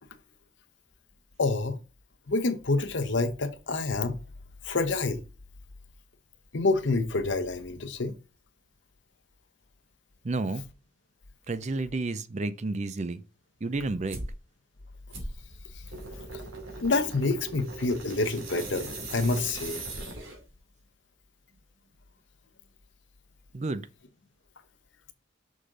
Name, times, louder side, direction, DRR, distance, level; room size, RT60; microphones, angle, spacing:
voice 1, 1.4-1.8 2.3-4.2 4.7-5.2 6.5-8.1 16.8-19.8, left 3 dB, 70° left, 0.9 m, -27 dB
voice 2, 10.2-10.7 11.5-13.2 13.6-14.2 23.5-23.9, right 2 dB, 35° right, 0.5 m, -31 dB
sound 1, 14.1-14.4 15.1-20.5, right 2 dB, 85° right, 2.5 m, -39 dB
6.4 x 5.0 x 3.8 m
head